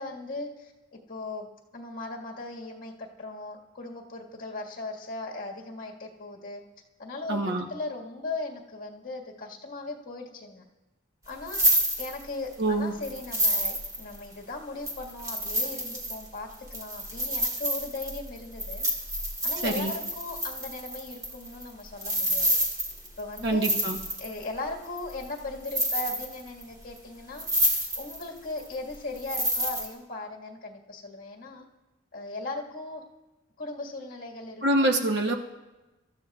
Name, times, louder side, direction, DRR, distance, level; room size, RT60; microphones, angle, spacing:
voice 1, 0.0-1.5 1.7-6.6 7.0-10.6 11.3-11.6 12.0-18.8 19.4-22.6 23.2-23.7 24.2-27.5 27.9-31.6 32.1-33.0 33.6-34.9, left 2 dB, 45° left, -2 dB, 1.8 m, -38 dB
voice 2, 7.3-7.6 12.6-12.9 19.6-19.9 23.4-24.0 34.6-35.3, right 1 dB, 55° right, 3 dB, 1.0 m, -25 dB
sound 1, 11.3-12.5 13.0-14.3 14.9-24.4 25.0-25.4 25.7-26.6 27.0-27.1 27.4-28.3 28.6-29.9, equal, 20° right, 2.1 m, -28 dB
26.0 x 13.5 x 2.4 m, 1.1 s
head